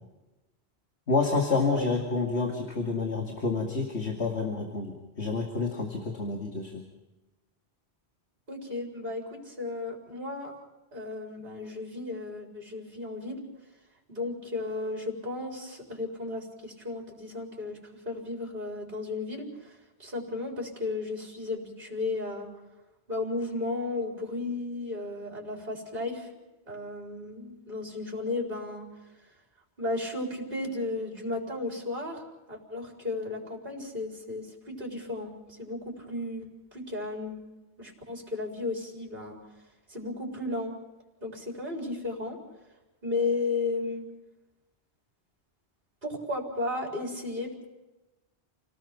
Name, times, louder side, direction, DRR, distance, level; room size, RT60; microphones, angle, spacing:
voice 1, 1.1-6.8, left 4 dB, 85° left, 2 dB, 2.6 m, -29 dB
voice 2, 8.5-10.5 10.9-13.4 14.1-22.5 23.1-26.3 26.7-28.8 29.8-37.4 37.8-39.4 39.9-40.7 41.2-42.4 43.0-44.0 46.0-47.7, left 2 dB, 50° right, 0 dB, 4.3 m, -34 dB
29.0 x 18.5 x 5.9 m, 1.0 s
omnidirectional pair, 1.1 m